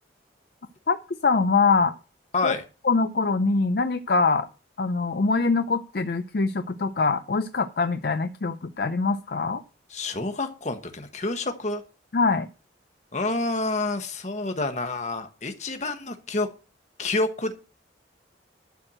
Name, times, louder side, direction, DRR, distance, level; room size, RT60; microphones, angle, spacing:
voice 1, 0.9-1.9 2.4-2.5 2.8-4.5 4.8-9.6 12.1-12.5, left 4 dB, 55° left, 10 dB, 0.5 m, -23 dB
voice 2, 2.3-2.6 9.9-11.8 13.1-16.5 17.0-17.5, left 2 dB, 40° left, 7 dB, 1.2 m, -28 dB
12.0 x 4.5 x 7.7 m, 0.34 s
head